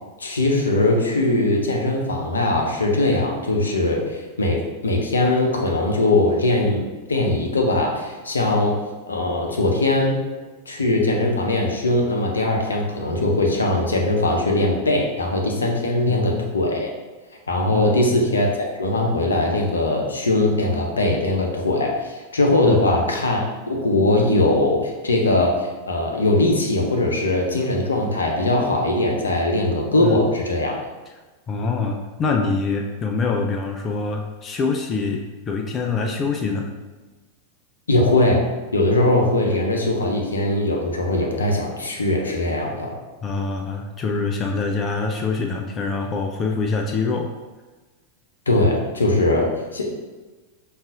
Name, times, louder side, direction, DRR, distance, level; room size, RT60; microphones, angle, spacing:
voice 1, 0.2-6.8 7.1-8.8 9.1-10.2 10.7-16.9 17.5-30.8 37.9-38.4 38.7-42.9 48.5-49.9, left 2 dB, 75° left, 1 dB, 0.6 m, -20 dB
voice 2, 16.1-16.5 17.7-18.1 22.6-22.9 30.0-30.2 31.5-36.7 43.2-47.3, left 4 dB, 25° left, 2 dB, 0.3 m, -25 dB
5.4 x 2.4 x 2.4 m, 1.2 s
figure-of-eight pair, 90°, 0 cm